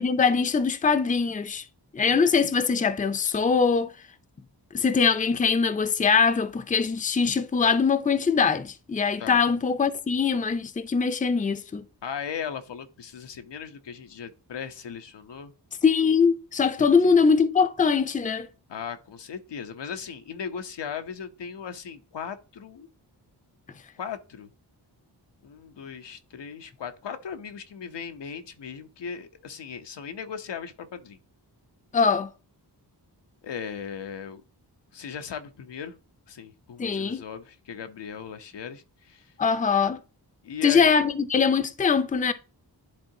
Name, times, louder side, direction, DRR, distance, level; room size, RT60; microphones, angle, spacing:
voice 1, 0.0-1.7 1.9-3.9 4.7-11.8 15.8-18.5 31.9-32.3 36.8-37.2 39.4-40.0 40.6-42.3, left 5 dB, 20° left, 0.4 m, -22 dB
voice 2, 12.0-15.5 16.8-17.2 18.7-22.9 24.0-24.5 25.4-31.2 33.4-34.4 34.9-35.9 36.3-39.2 40.4-40.9, left 7 dB, 90° left, 0.8 m, -37 dB
10.5 x 3.8 x 2.7 m
wide cardioid pair, 125°, 42 cm